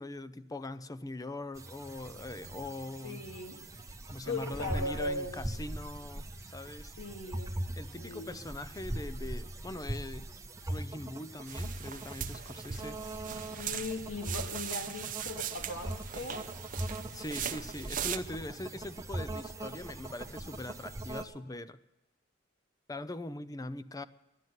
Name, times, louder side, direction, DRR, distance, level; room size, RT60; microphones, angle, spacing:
voice 1, 0.0-3.2 4.1-6.9 7.8-10.3 10.7-13.0 17.1-21.8 22.9-24.0, left 2 dB, 20° left, 14 dB, 0.5 m, -42 dB
sound 1, 1.5-21.2, right 1 dB, 15° right, 0.9 m, -41 dB
voice 2, 3.0-3.6 4.2-5.4 7.0-7.5 7.9-8.4 13.6-16.5, left 2 dB, 85° left, 4 dB, 2.1 m, -38 dB
sound 2, 11.5-18.2, right 9 dB, 45° right, 0.7 m, -39 dB
12.0 x 11.0 x 9.3 m, 0.98 s
head